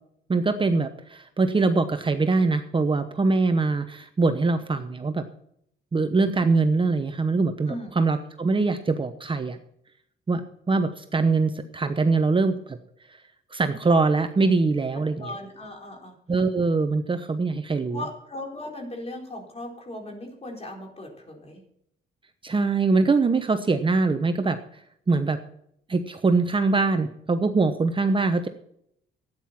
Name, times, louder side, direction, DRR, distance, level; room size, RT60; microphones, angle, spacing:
voice 1, 0.3-5.2 5.9-9.6 10.3-12.8 13.5-15.3 16.3-18.0 22.4-24.6 25.1-25.4 25.9-28.5, right 3 dB, 25° right, 8 dB, 0.9 m, -23 dB
voice 2, 14.9-16.1 17.9-21.6, left 1 dB, 30° left, 1 dB, 4.3 m, -38 dB
13.0 x 9.3 x 5.9 m, 0.72 s
cardioid pair, 90°, 20 cm